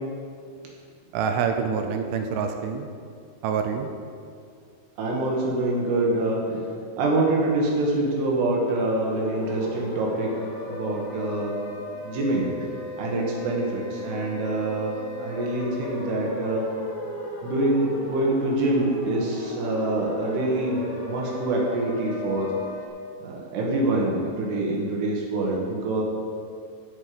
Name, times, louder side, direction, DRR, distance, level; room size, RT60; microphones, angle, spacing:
voice 1, 1.1-2.9 3.4-3.9, right 6 dB, 80° right, 5 dB, 3.0 m, -26 dB
voice 2, 5.0-6.7 7.0-11.6 12.0-12.5 13.0-16.6 17.4-22.5 23.2-26.0, right 2 dB, 65° right, -2 dB, 3.5 m, -25 dB
sound 1, 9.0-22.9, left 2 dB, 75° left, 3.7 m, -35 dB
16.0 x 6.2 x 5.1 m, 2.2 s
omnidirectional pair, 5.7 m